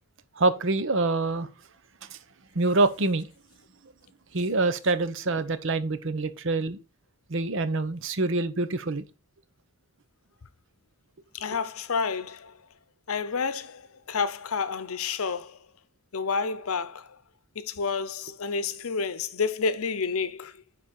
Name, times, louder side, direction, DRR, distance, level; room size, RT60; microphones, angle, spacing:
voice 1, 0.4-1.5 2.5-3.3 4.3-6.8 7.3-9.0 11.5-11.6, right 3 dB, 60° right, 0.8 m, -25 dB
voice 2, 11.3-12.6 13.1-15.6 16.1-17.2 17.5-20.6, left 5 dB, 75° left, 0.7 m, -30 dB
9.9 x 4.3 x 4.2 m
head